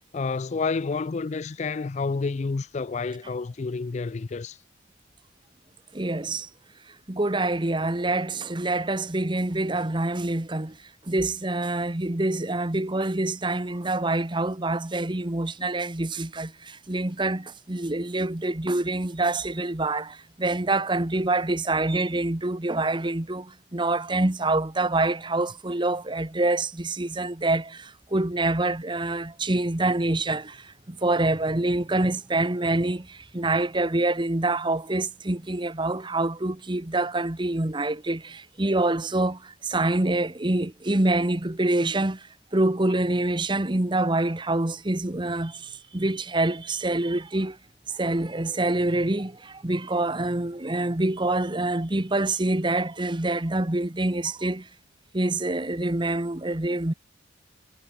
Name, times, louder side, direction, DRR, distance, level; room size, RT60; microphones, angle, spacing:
voice 1, 0.1-4.6, left 4 dB, 35° left, 0.4 m, -29 dB
voice 2, 5.9-6.5 7.1-10.8 11.1-42.3 42.5-47.6 47.9-54.7 55.1-56.9, right 2 dB, 25° right, 1.1 m, -26 dB
head